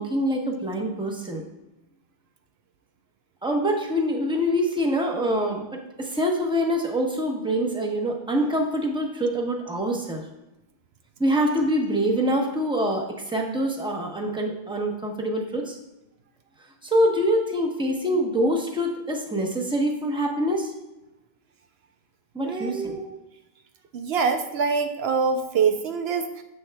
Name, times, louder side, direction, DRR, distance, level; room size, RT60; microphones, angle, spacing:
voice 1, 0.0-1.4 3.4-10.2 11.2-15.8 16.8-20.7 22.3-23.2, equal, 5° right, 1 dB, 1.0 m, -25 dB
voice 2, 22.4-23.0 23.9-26.4, right 5 dB, 75° right, 6 dB, 0.8 m, -25 dB
9.7 x 7.1 x 2.3 m, 0.96 s
omnidirectional pair, 1.1 m